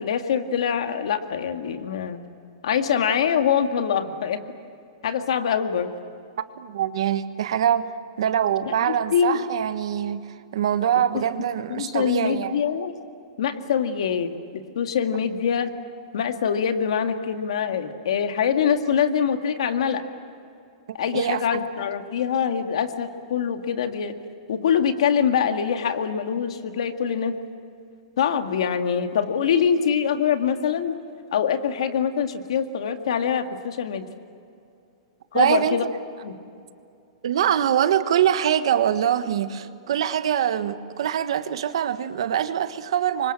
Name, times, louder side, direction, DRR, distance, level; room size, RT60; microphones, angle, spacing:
voice 1, 0.0-2.2 2.6-4.4 5.0-5.9 8.6-9.4 11.1-11.2 11.7-12.9 13.4-15.7 16.1-20.0 20.9-24.1 24.5-27.4 28.2-31.0 31.3-34.1 35.3-35.8 36.2-36.3, left 7 dB, 65° left, 2.0 m, -24 dB
voice 2, 6.6-7.9 8.2-12.5 21.1-21.6 35.3-35.9 37.2-43.3, right 9 dB, 60° right, 1.4 m, -24 dB
28.0 x 25.0 x 7.7 m
supercardioid pair, 180°, 3 cm